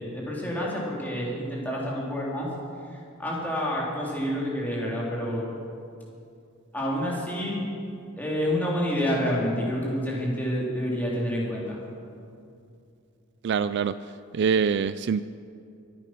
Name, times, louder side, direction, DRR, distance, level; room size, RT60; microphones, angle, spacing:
voice 1, 0.0-2.5 2.9-5.5 6.7-7.6 8.2-11.8, equal, 10° left, -5 dB, 3.5 m, -28 dB
voice 2, 13.4-14.0 14.3-15.2, right 6 dB, 50° right, 14 dB, 0.3 m, -24 dB
24.5 x 9.0 x 6.1 m, 2.5 s
head